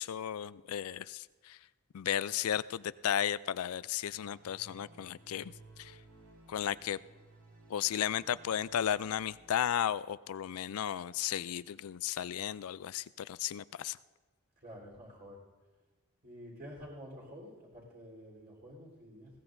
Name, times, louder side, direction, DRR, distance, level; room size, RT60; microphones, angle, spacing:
voice 1, 0.0-1.6 1.9-5.5 5.8-6.0 6.5-7.0 7.7-14.0, left 10 dB, 85° left, 17 dB, 0.4 m, -34 dB
sound 1, 4.1-9.5, right 2 dB, 85° right, 4.4 m, -58 dB
voice 2, 14.6-15.4 16.2-19.3, equal, 45° right, -4 dB, 3.8 m, -49 dB
20.5 x 17.0 x 2.6 m, 1.3 s
head